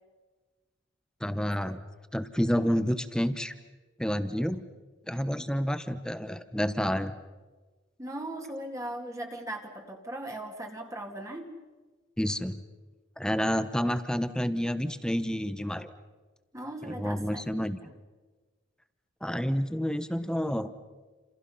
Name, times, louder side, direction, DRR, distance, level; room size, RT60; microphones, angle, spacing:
voice 1, 1.2-1.8 2.1-3.5 4.0-4.6 5.1-7.1 12.2-12.6 13.2-15.9 16.9-17.8 19.2-20.7, equal, 5° left, 11 dB, 1.1 m, -29 dB
voice 2, 5.1-5.5 8.0-11.5 16.5-17.4, right 1 dB, 15° right, 2 dB, 2.2 m, -39 dB
29.5 x 28.0 x 5.6 m, 1.3 s
head